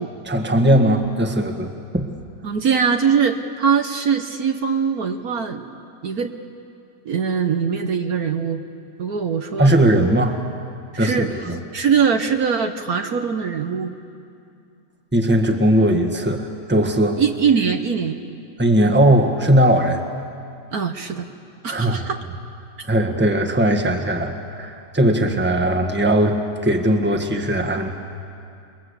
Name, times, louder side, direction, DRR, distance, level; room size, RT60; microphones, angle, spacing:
voice 1, 0.2-2.1 9.6-10.4 11.0-11.6 15.1-17.2 18.6-20.0 21.7-22.0 22.9-27.9, right 1 dB, 5° right, 4 dB, 1.5 m, -18 dB
voice 2, 2.4-5.7 6.0-6.3 7.0-8.6 9.0-9.7 10.9-11.4 11.7-13.9 17.2-18.2 20.7-21.3 21.6-22.2, right 6 dB, 60° right, 6 dB, 1.5 m, -22 dB
29.0 x 21.5 x 8.3 m, 2.5 s
omnidirectional pair, 1.9 m